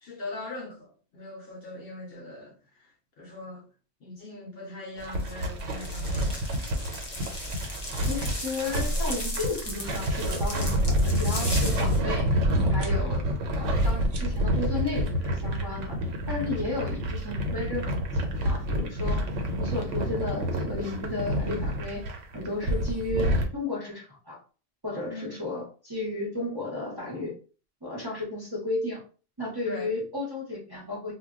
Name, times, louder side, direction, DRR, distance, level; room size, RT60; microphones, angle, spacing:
voice 1, 0.0-3.7 4.0-6.7 25.1-25.4 29.6-29.9, left 2 dB, 60° left, 0.8 m, -41 dB
sound 1, 5.0-23.5, equal, 90° right, 1.0 m, -28 dB
sound 2, 5.2-12.0, equal, 35° left, 0.4 m, -35 dB
voice 2, 8.1-12.3 12.7-13.2 13.5-16.0 16.3-19.3 19.6-22.0 22.3-24.4 24.8-27.4 27.8-29.0 29.4-31.1, left 2 dB, 25° right, 0.7 m, -33 dB
sound 3, 10.3-10.4 11.4-11.6 12.7-12.9 14.0-14.4, right 4 dB, 60° right, 0.5 m, -44 dB
2.2 x 2.1 x 3.5 m
omnidirectional pair, 1.3 m